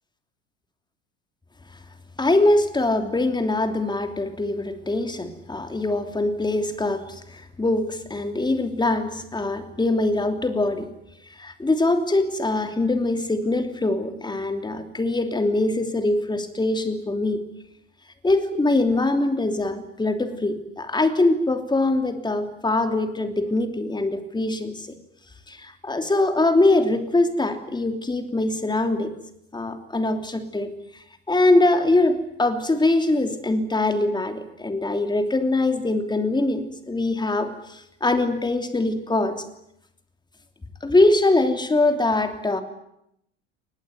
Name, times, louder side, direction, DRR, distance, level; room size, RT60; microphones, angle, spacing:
voice 1, 2.2-10.9 11.4-17.4 18.2-24.9 25.5-29.1 29.5-30.7 31.3-39.4 40.8-42.6, left 2 dB, 10° left, 7 dB, 3.1 m, -23 dB
24.0 x 19.5 x 9.5 m, 0.78 s
figure-of-eight pair, 70°, 36 cm